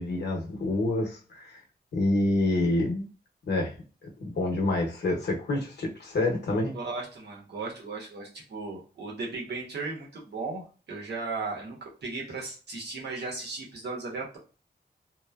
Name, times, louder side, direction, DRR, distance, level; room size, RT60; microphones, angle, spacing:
voice 1, 0.0-1.6 1.9-3.1 3.5-3.7 4.2-6.7, left 2 dB, 85° left, -1 dB, 0.9 m, -27 dB
voice 2, 6.7-14.4, right 3 dB, 85° right, -2 dB, 1.0 m, -36 dB
3.0 x 2.1 x 2.3 m, 0.36 s
wide cardioid pair, 135°, 17 cm